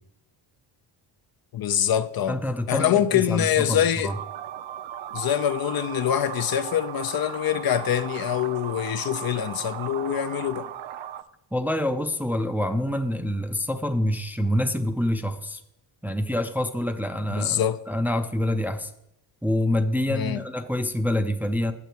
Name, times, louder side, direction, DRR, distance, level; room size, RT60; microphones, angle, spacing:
voice 1, 1.5-2.4 2.7-4.1 5.1-10.7 17.3-17.8 20.1-20.4, left 10 dB, 50° left, 0.5 m, -24 dB
voice 2, 2.3-4.2 11.5-15.6 16.0-17.6 17.9-18.9 19.4-21.7, left 1 dB, 5° right, 0.5 m, -26 dB
sound 1, 4.1-11.2, right 10 dB, 90° right, 0.6 m, -37 dB
8.1 x 6.9 x 4.5 m
cardioid pair, 95°, 46 cm